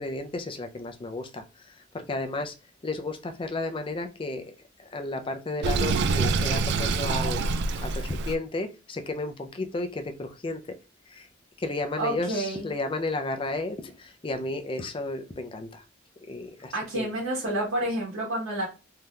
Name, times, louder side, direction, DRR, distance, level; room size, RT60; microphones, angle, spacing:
voice 1, 0.0-1.4 1.9-2.5 2.8-4.6 4.9-7.4 7.8-10.6 11.1-11.3 11.6-15.8 16.3-17.1, left 2 dB, 25° left, 0.4 m, -33 dB
Sink (filling or washing), 5.6-8.4, right 4 dB, 60° right, 0.3 m, -26 dB
voice 2, 12.0-12.7 16.7-18.6, right 1 dB, 90° right, 1.2 m, -29 dB
3.4 x 2.7 x 2.3 m
head